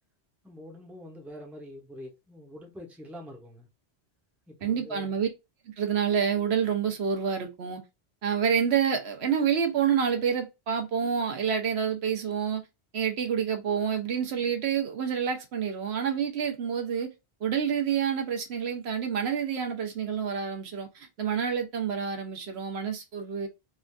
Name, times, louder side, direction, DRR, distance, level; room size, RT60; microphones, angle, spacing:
voice 1, 0.4-3.7 4.5-5.2, equal, ahead, 0.7 m, -45 dB
voice 2, 4.6-5.3 5.7-7.8 8.2-12.6 12.9-17.1 17.4-23.5, right 7 dB, 75° right, 1.0 m, -28 dB
3.3 x 2.5 x 2.2 m
omnidirectional pair, 1.1 m